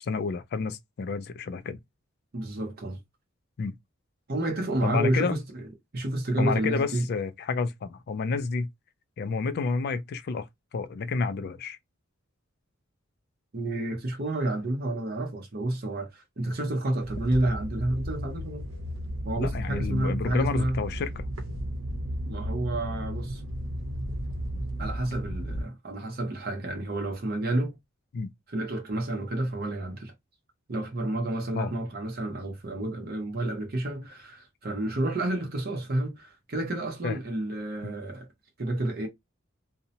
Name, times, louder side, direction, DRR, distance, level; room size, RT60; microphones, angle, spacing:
voice 1, 0.0-1.8 3.6-3.7 4.8-5.4 6.4-8.7 9.2-10.5 10.7-11.8 19.4-21.3 28.1-28.3 31.5-31.7 37.0-37.2 37.8-37.9, left 4 dB, 50° left, 0.3 m, -30 dB
voice 2, 2.3-3.0 4.3-5.7 5.9-7.0 13.5-18.6 19.2-20.8 22.3-23.4 24.8-27.8 28.5-30.1 30.7-38.3 38.6-39.1, right 1 dB, 50° right, 0.7 m, -30 dB
sound 1, 17.0-25.6, equal, 85° right, 0.8 m, -34 dB
2.7 x 2.0 x 2.7 m
head